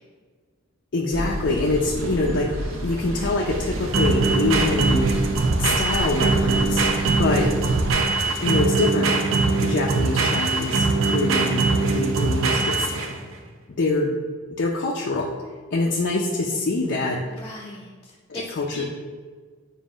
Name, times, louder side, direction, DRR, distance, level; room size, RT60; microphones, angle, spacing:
voice 1, 0.9-2.5 2.8-5.1 5.6-6.9 7.2-7.5 8.4-9.1 9.6-12.9 13.7-14.1 14.6-15.3 15.7-17.2 18.3-18.8, left 2 dB, 55° left, -2 dB, 0.6 m, -24 dB
sound 1, 1.1-7.9, equal, 85° right, 1.2 m, -31 dB
sound 2, 1.7-13.3, right 3 dB, 70° right, 0.6 m, -22 dB
voice 2, 7.0-7.4 17.3-18.5 18.7-18.8, left 1 dB, 15° left, -6 dB, 0.7 m, -39 dB
7.4 x 2.7 x 5.0 m, 1.5 s
head